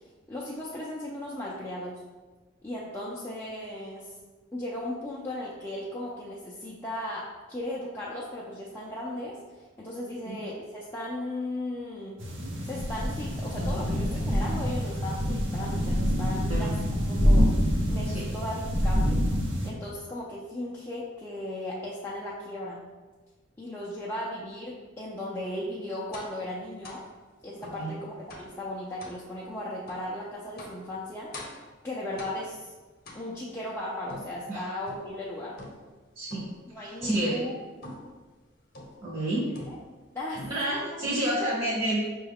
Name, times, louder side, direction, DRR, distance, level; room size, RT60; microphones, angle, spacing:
voice 1, 0.3-1.9 2.6-4.1 4.5-12.2 12.6-16.7 17.1-17.5 17.9-19.2 19.6-22.8 23.6-27.0 27.4-31.3 31.8-32.7 33.1-35.6 36.7-37.6 40.1-40.8, left 1 dB, 10° left, -7 dB, 0.4 m, -36 dB
sound 1, 12.2-19.7, equal, 80° right, 0.7 m, -26 dB
sound 2, 26.1-26.4 26.8-27.1 27.6-27.8 28.3-28.6 29.0-29.2 29.9-30.1 30.6-30.9 31.3-31.7 32.2-32.6 33.0-33.6 34.1-35.2 35.6-36.0 36.3-36.7 37.0-37.3 37.8-38.2 38.7-39.1 39.5-40.0 40.3-40.8, left 2 dB, 50° left, 0.7 m, -44 dB
voice 2, 36.2-36.5 36.8-37.4 39.0-39.5 40.5-42.1, right 1 dB, 30° right, -8 dB, 0.7 m, -29 dB
5.4 x 2.3 x 3.5 m, 1.3 s
head